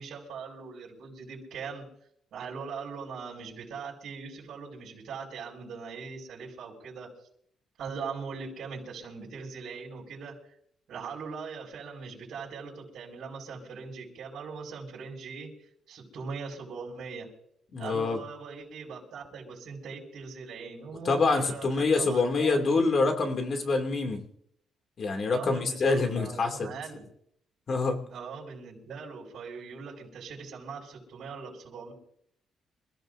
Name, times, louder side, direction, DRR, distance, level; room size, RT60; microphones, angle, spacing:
voice 1, 0.0-1.8 2.3-7.1 7.8-10.4 10.9-15.5 15.9-17.3 17.8-22.6 25.3-27.0 28.1-31.9, right 5 dB, 70° right, -9 dB, 5.9 m, -40 dB
voice 2, 17.7-18.2 21.0-24.2 25.0-26.7 27.7-28.0, left 3 dB, 40° left, 3 dB, 2.7 m, -26 dB
28.0 x 15.5 x 2.7 m, 0.70 s
cardioid pair, 145°, 0 cm